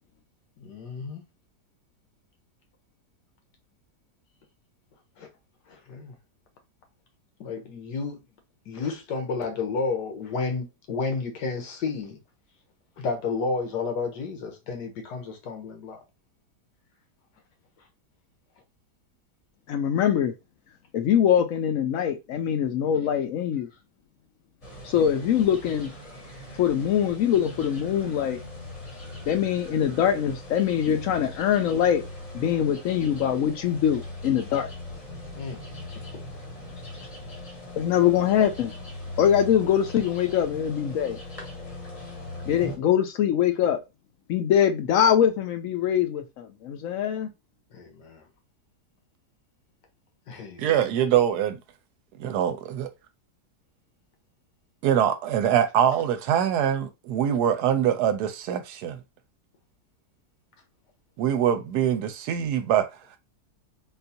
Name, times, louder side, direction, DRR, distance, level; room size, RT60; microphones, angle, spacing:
voice 1, 0.6-1.2 5.9-6.1 7.4-8.2 8.7-12.2 13.0-16.0 35.4-35.6 47.7-48.2 50.3-50.6, left 4 dB, 90° left, 1.5 m, -31 dB
voice 2, 19.7-20.3 20.9-23.7 24.8-25.9 26.6-28.4 29.3-32.0 32.3-34.7 37.8-38.7 39.2-41.2 42.5-43.8 44.3-47.3, left 9 dB, 70° left, 0.8 m, -23 dB
sound 1, 24.6-42.8, left 1 dB, 30° left, 0.7 m, -40 dB
voice 3, 50.6-51.6 52.2-52.9 54.8-59.0 61.2-62.9, right 9 dB, 75° right, 1.1 m, -23 dB
3.7 x 2.4 x 2.7 m
omnidirectional pair, 1.8 m